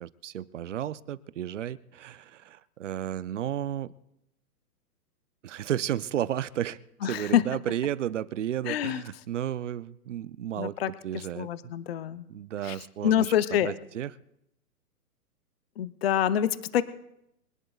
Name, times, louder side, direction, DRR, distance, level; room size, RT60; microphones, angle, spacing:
voice 1, 0.0-3.9 5.4-11.7 12.3-14.1, right 11 dB, 50° right, 17 dB, 0.6 m, -33 dB
voice 2, 7.0-7.4 8.7-9.0 10.6-10.9 11.4-12.3 12.6-12.8 13.0-13.7 15.8-16.8, left 10 dB, 40° left, 14 dB, 0.6 m, -26 dB
24.5 x 18.5 x 2.3 m, 0.81 s
hypercardioid pair, 160°, 46 cm